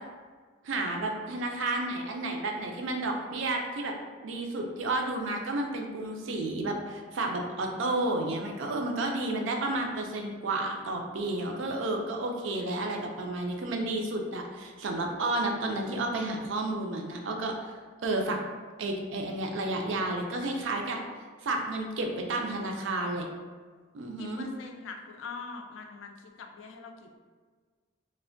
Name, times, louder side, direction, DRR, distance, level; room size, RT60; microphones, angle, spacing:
voice 1, 0.6-3.9 4.2-17.7 18.0-18.4 18.8-21.0 21.4-23.3 23.9-24.5, right 2 dB, 75° right, 2 dB, 0.4 m, -31 dB
voice 2, 24.2-27.2, left 4 dB, 80° left, 4 dB, 0.3 m, -43 dB
3.2 x 2.1 x 2.5 m, 1.5 s
head